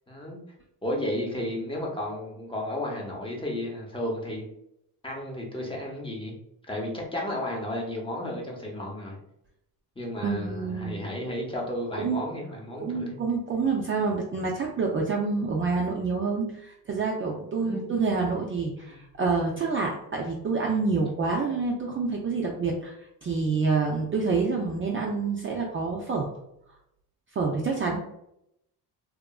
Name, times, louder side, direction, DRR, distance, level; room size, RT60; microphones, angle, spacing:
voice 1, 0.1-0.4 0.8-4.4 5.0-6.3 6.7-9.2 10.0-13.1 14.6-14.7 17.6-18.0 18.8-18.9, left 1 dB, 15° left, -2 dB, 0.7 m, -33 dB
voice 2, 10.2-11.0 12.0-12.2 12.8-26.3 27.3-28.0, right 4 dB, 30° right, -1 dB, 0.4 m, -27 dB
2.8 x 2.4 x 2.3 m, 0.79 s
cardioid pair, 100°, 41 cm